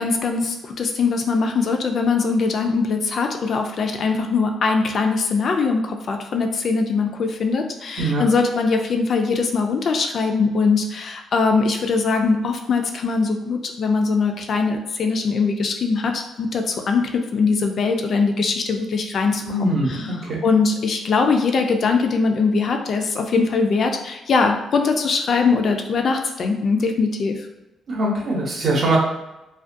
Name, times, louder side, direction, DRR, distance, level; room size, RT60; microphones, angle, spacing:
voice 1, 0.0-27.3, left 4 dB, 55° left, 4 dB, 0.3 m, -21 dB
voice 2, 19.5-20.4 27.9-29.0, right 1 dB, 55° right, -2 dB, 0.7 m, -22 dB
2.4 x 2.1 x 2.5 m, 0.99 s
cardioid pair, 105°, 0 cm